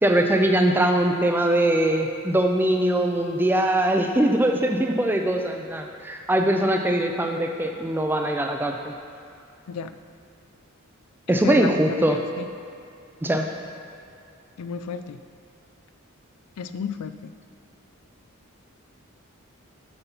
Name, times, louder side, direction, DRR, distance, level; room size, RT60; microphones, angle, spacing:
voice 1, 0.0-8.9 11.3-12.2 13.2-13.4, right 1 dB, 10° right, 3 dB, 0.4 m, -22 dB
voice 2, 11.4-12.4 14.6-15.2 16.6-17.3, left 6 dB, 80° left, 11 dB, 0.4 m, -32 dB
8.8 x 4.1 x 5.8 m, 2.5 s
head